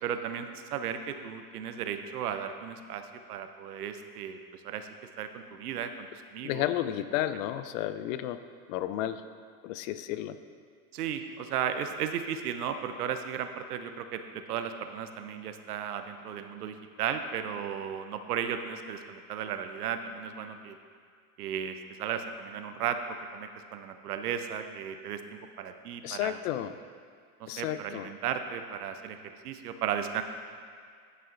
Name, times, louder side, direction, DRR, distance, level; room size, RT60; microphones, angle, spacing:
voice 1, 0.0-4.9 5.2-6.1 6.3-6.7 10.9-20.8 21.4-26.4 27.4-30.2, right 8 dB, 90° right, 8 dB, 0.8 m, -35 dB
voice 2, 6.4-8.4 8.7-9.2 9.6-10.4 26.0-26.8 27.5-28.1, left 12 dB, 65° left, 12 dB, 0.6 m, -32 dB
11.0 x 5.8 x 3.8 m, 2.2 s
hypercardioid pair, 110°, 44 cm